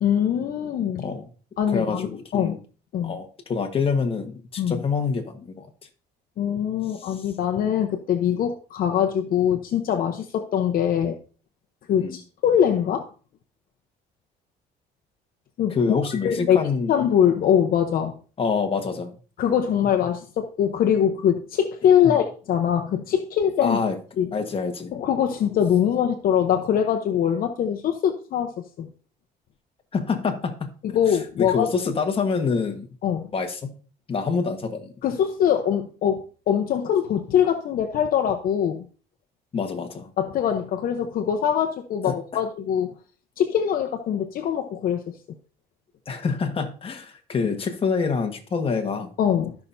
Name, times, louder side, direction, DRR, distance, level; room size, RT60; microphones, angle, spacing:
voice 1, 0.0-1.1 1.6-2.6 2.9-3.1 4.6-4.8 6.4-11.2 11.9-13.1 15.6-15.8 16.1-16.6 16.9-18.1 19.4-23.8 24.2-24.3 24.9-28.9 30.8-31.7 33.0-33.3 35.0-38.9 40.2-43.0 43.4-45.1 49.2-49.5, left 9 dB, 60° left, 4 dB, 0.9 m, -23 dB
voice 2, 1.0-1.3 1.7-2.6 3.0-5.7 7.0-7.2 12.0-12.2 15.7-16.9 18.4-19.1 22.0-22.1 23.6-24.0 24.3-24.9 29.9-30.7 31.4-32.9 33.3-33.7 34.1-34.9 39.5-40.1 42.0-42.4 46.1-49.1, left 5 dB, 35° left, 5 dB, 1.4 m, -26 dB
13.5 x 5.8 x 2.7 m, 0.38 s
cardioid pair, 110°, 17 cm